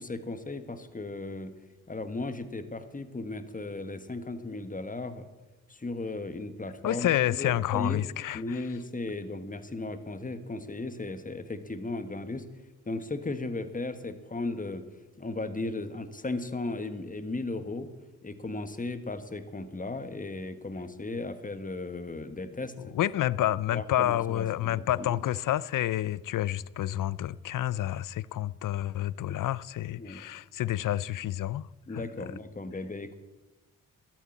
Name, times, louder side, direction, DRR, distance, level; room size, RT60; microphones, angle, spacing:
voice 1, 0.0-1.5 1.9-5.3 5.7-7.1 7.4-8.0 8.3-12.4 12.9-14.8 15.2-17.9 18.2-22.7 23.7-25.2 29.3-29.4 30.0-30.3 31.9-33.2, left 2 dB, 20° left, 1.4 m, -36 dB
voice 2, 6.8-8.6 22.8-32.3, left 13 dB, 60° left, 0.5 m, -29 dB
12.5 x 9.2 x 7.2 m
cardioid pair, 55°, 36 cm